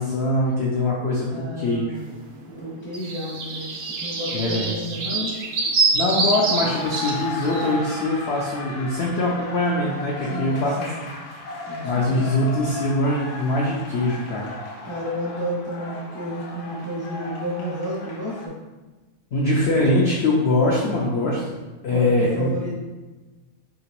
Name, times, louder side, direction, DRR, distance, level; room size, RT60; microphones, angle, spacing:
voice 1, 0.0-2.0 4.3-4.7 5.9-10.8 11.8-14.5 19.3-22.5, left 2 dB, 65° left, -4 dB, 0.6 m, -23 dB
voice 2, 1.2-2.1 2.6-5.3 10.3-11.0 11.7-12.3 14.8-18.5 21.9-22.8, equal, 30° right, -8 dB, 0.5 m, -31 dB
sound 1, 2.1-2.2 2.5-7.7, right 3 dB, 65° right, 0.7 m, -25 dB
sound 2, 6.1-18.5, left 3 dB, 85° left, 1.1 m, -35 dB
2.9 x 2.8 x 2.9 m, 1.2 s
omnidirectional pair, 1.6 m